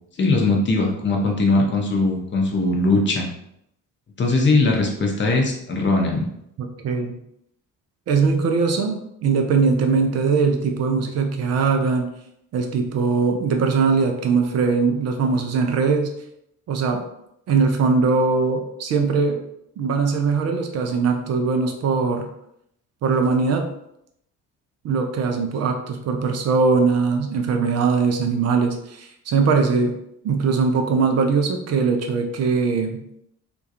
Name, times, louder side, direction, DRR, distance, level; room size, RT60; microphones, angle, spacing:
voice 1, 0.2-3.3 4.2-6.3, left 2 dB, 25° left, 1 dB, 0.7 m, -20 dB
voice 2, 6.6-7.2 8.1-12.1 12.5-16.1 16.7-17.0 17.5-19.4 19.8-22.3 23.0-23.7 24.8-29.9 30.2-33.0, right 4 dB, 35° right, 4 dB, 0.4 m, -21 dB
2.3 x 2.2 x 2.7 m, 0.75 s
figure-of-eight pair, 45°, 47 cm